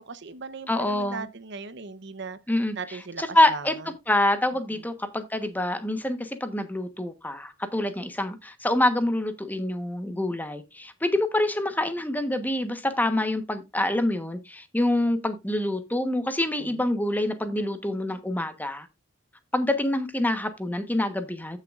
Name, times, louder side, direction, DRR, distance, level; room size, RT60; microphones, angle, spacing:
voice 1, 0.0-2.4 2.8-3.2 3.5-3.6 16.6-16.7, right 4 dB, 60° right, 0.9 m, -37 dB
voice 2, 0.7-1.3 2.5-18.9 19.5-21.6, left 1 dB, 10° left, 1.1 m, -26 dB
14.5 x 6.6 x 2.5 m
head